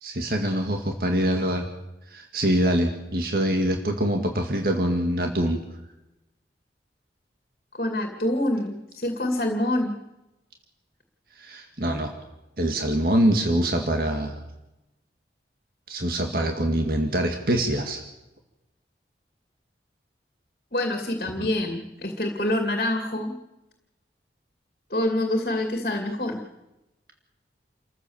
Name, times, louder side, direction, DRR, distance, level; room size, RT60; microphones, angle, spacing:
voice 1, 0.0-1.7 2.1-5.6 11.4-12.1 12.6-14.4 15.9-18.0 21.4-21.5, right 1 dB, 55° right, 4 dB, 2.0 m, -24 dB
voice 2, 7.7-10.0 20.7-23.4 24.9-26.4, left 1 dB, 50° left, 4 dB, 2.4 m, -26 dB
28.5 x 14.5 x 7.2 m, 0.98 s
head